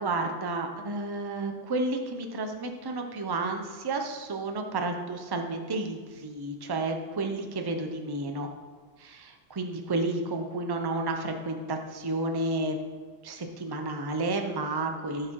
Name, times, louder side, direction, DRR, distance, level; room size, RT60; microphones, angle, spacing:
voice 1, 0.0-8.5 9.0-12.8 13.2-15.3, right 2 dB, 25° right, 4 dB, 0.7 m, -31 dB
13.5 x 4.9 x 4.7 m, 1.5 s
omnidirectional pair, 1.3 m